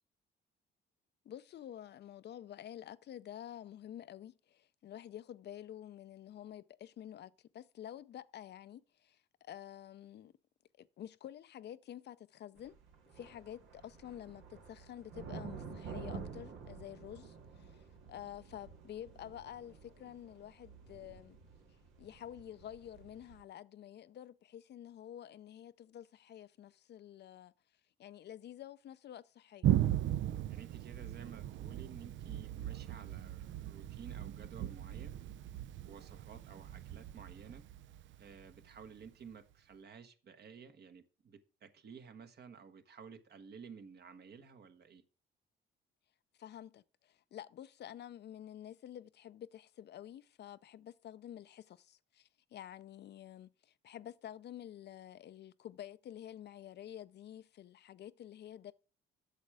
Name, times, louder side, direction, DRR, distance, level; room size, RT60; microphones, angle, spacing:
voice 1, 1.2-10.3 10.7-12.7 13.1-21.4 22.0-27.5 28.0-29.7 46.4-58.7, left 11 dB, 60° left, 0.5 m, -49 dB
sound 1, 12.6-23.4, right 5 dB, 90° right, 1.8 m, -50 dB
Thunder, 29.6-39.0, right 12 dB, 70° right, 0.5 m, -37 dB
voice 2, 30.5-35.2 35.9-37.6 38.2-45.0, right 6 dB, 55° right, 1.2 m, -53 dB
8.2 x 6.5 x 4.8 m
cardioid pair, 90°, 20 cm